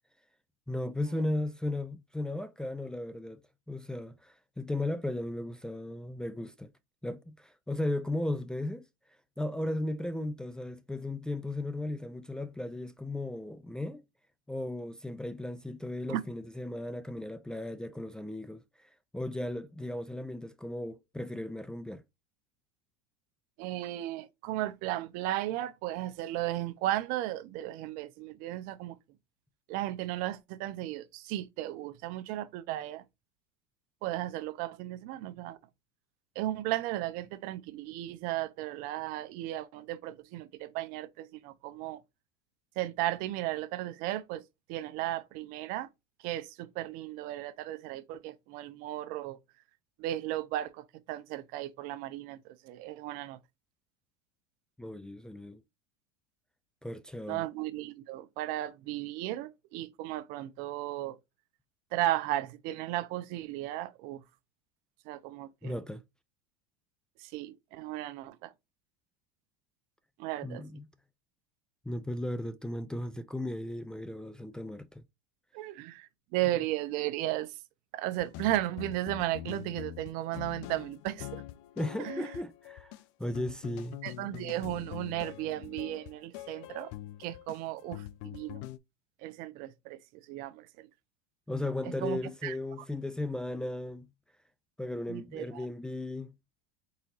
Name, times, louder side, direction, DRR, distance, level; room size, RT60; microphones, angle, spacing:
voice 1, 0.7-3.4 3.7-6.7 7.0-8.8 9.4-14.0 14.5-22.0 54.8-55.6 56.8-57.4 65.6-66.0 70.4-70.9 71.9-75.0 81.8-82.9 83.2-84.0 91.5-94.1 94.8-96.3, left 1 dB, 5° left, 0.4 m, -36 dB
voice 2, 23.6-29.0 29.7-33.0 34.0-35.6 36.3-42.0 42.8-44.4 44.7-45.9 46.2-49.4 50.0-53.4 57.3-61.2 61.9-64.2 65.0-65.8 67.2-68.5 70.2-70.6 75.5-77.6 77.9-81.4 82.0-82.3 84.0-86.9 87.2-88.6 89.2-90.9 92.0-92.5 95.1-95.7, right 15 dB, 60° right, 0.7 m, -35 dB
sound 1, 78.2-88.8, left 14 dB, 60° left, 0.5 m, -44 dB
4.1 x 4.0 x 2.5 m
supercardioid pair, 110°, 17 cm